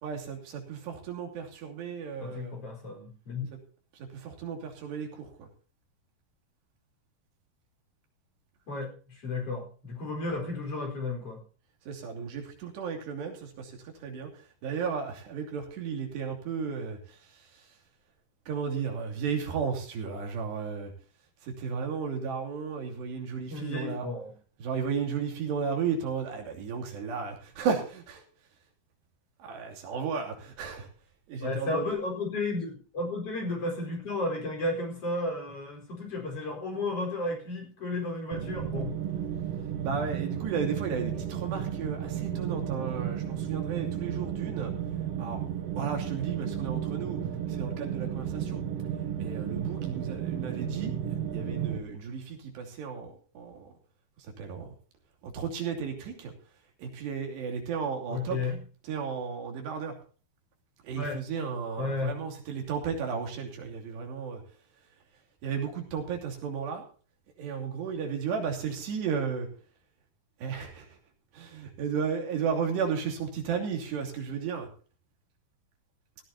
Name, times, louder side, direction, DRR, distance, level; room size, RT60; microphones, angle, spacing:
voice 1, 0.0-2.5 3.9-5.5 11.9-13.7 14.0-17.7 18.5-20.9 21.4-24.1 24.6-28.2 29.4-30.9 31.3-31.9 39.8-44.7 45.2-45.4 45.8-47.2 47.5-48.6 49.2-53.7 54.2-54.7 55.2-56.3 56.8-58.4 58.8-59.9 60.8-64.4 65.4-66.8 67.4-69.5 70.4-71.0 71.3-74.7, right 6 dB, 90° right, 2 dB, 5.1 m, -34 dB
voice 2, 2.2-3.5 8.7-11.4 23.5-24.3 31.4-38.9 58.1-58.6 61.0-61.2 61.8-62.2, left 2 dB, 35° left, 2 dB, 5.2 m, -33 dB
sound 1, 38.3-51.8, right 9 dB, 65° right, 1.5 m, -33 dB
17.0 x 15.0 x 2.8 m, 0.39 s
omnidirectional pair, 4.7 m